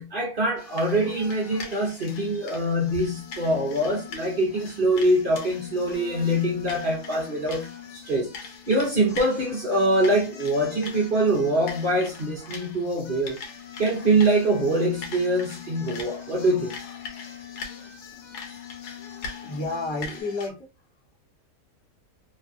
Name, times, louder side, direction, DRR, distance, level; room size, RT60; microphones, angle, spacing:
voice 1, 0.0-8.3 8.7-13.4 13.8-16.7, right 1 dB, 45° right, 0.8 m, -24 dB
sound 1, 0.6-20.5, left 4 dB, 80° left, 1.4 m, -42 dB
voice 2, 2.2-2.5 19.4-20.7, left 2 dB, 25° left, 0.6 m, -32 dB
sound 2, 3.1-12.6 13.2-20.2, left 11 dB, 45° left, 1.2 m, -44 dB
3.2 x 2.4 x 2.5 m
omnidirectional pair, 1.7 m